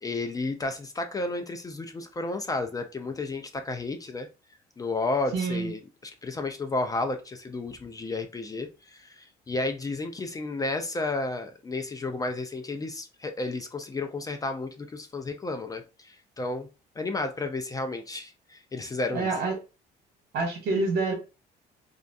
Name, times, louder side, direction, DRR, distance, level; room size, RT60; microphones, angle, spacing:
voice 1, 0.0-4.3 4.8-5.8 6.2-16.7 17.0-19.3, left 2 dB, 20° left, 0.4 m, -32 dB
voice 2, 5.3-5.7 19.1-19.6 20.3-21.1, right 3 dB, 75° right, 1.0 m, -27 dB
2.4 x 2.2 x 2.5 m
cardioid pair, 110°, 17 cm